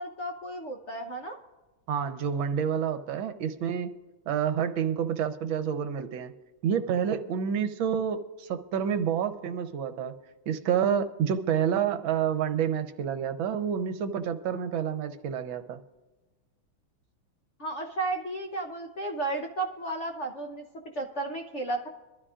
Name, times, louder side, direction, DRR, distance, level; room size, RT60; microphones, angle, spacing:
voice 1, 0.0-1.4 17.6-20.6 20.9-21.9, right 2 dB, 55° left, 2 dB, 0.8 m, -33 dB
voice 2, 1.9-3.9 4.3-6.3 6.6-10.1 10.5-15.8, right 8 dB, 70° right, 9 dB, 1.5 m, -28 dB
23.0 x 12.5 x 2.5 m, 1.2 s
omnidirectional pair, 2.3 m